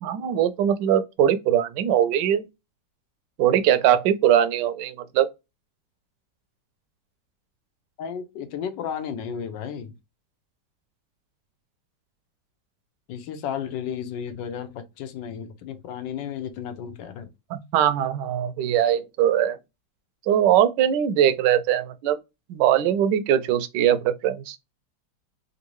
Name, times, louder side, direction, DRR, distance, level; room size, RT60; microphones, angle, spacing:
voice 1, 0.0-2.5 3.4-5.3 17.5-19.6 20.3-22.2 22.5-24.6, right 10 dB, 75° right, 1.2 m, -21 dB
voice 2, 8.0-9.9 13.1-17.3, left 8 dB, 75° left, 1.3 m, -33 dB
3.6 x 2.6 x 2.9 m
omnidirectional pair, 2.0 m